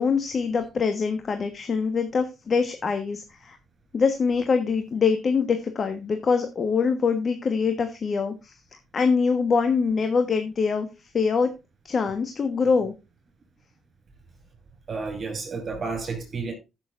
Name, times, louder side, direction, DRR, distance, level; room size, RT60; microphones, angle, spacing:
voice 1, 0.0-3.6 3.9-8.5 8.9-10.9 11.1-11.5 11.8-12.9, left 5 dB, 45° left, 1.4 m, -24 dB
voice 2, 14.9-16.5, right 4 dB, 45° right, 5.8 m, -31 dB
15.0 x 6.9 x 2.6 m
cardioid pair, 90°, 0 cm